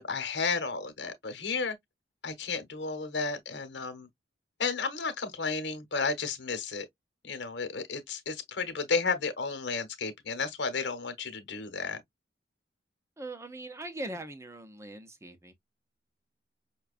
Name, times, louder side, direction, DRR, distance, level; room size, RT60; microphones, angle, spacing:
voice 1, 0.0-1.8 2.2-4.1 4.6-6.9 7.2-12.0, left 4 dB, 65° left, 1.0 m, -32 dB
voice 2, 13.2-15.5, right 1 dB, 15° right, 0.6 m, -41 dB
5.7 x 2.3 x 2.4 m
head